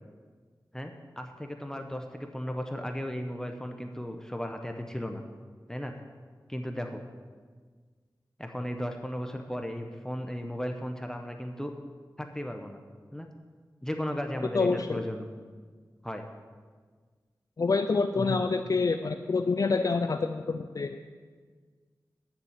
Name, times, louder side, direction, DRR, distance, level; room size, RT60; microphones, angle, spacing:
voice 1, 0.7-5.2 5.7-5.9 6.5-7.0 8.4-11.7 12.2-12.8 13.1-13.3 13.8-15.3 16.0-16.2 18.2-18.4, equal, 10° left, 4 dB, 1.0 m, -35 dB
voice 2, 14.5-15.0 17.6-21.0, left 4 dB, 55° left, 7 dB, 0.5 m, -27 dB
9.8 x 7.1 x 7.4 m, 1.6 s
cardioid pair, 50°, 7 cm